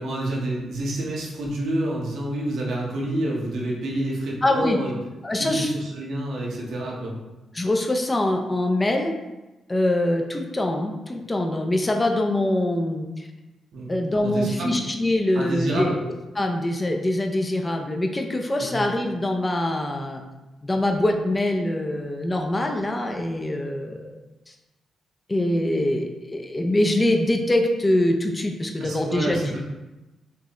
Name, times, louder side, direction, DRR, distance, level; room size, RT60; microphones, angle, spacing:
voice 1, 0.0-4.9 5.3-7.2 13.7-13.9 14.2-14.8 15.3-16.0 18.6-18.7 28.8-29.6, right 1 dB, 70° right, -3 dB, 1.0 m, -28 dB
voice 2, 4.4-4.8 5.2-5.7 7.5-9.1 9.7-13.3 13.9-15.9 16.4-20.2 20.6-24.2 25.3-29.6, left 1 dB, 25° left, 3 dB, 0.6 m, -24 dB
4.5 x 3.1 x 3.0 m, 1.1 s
hypercardioid pair, 45°, 0 cm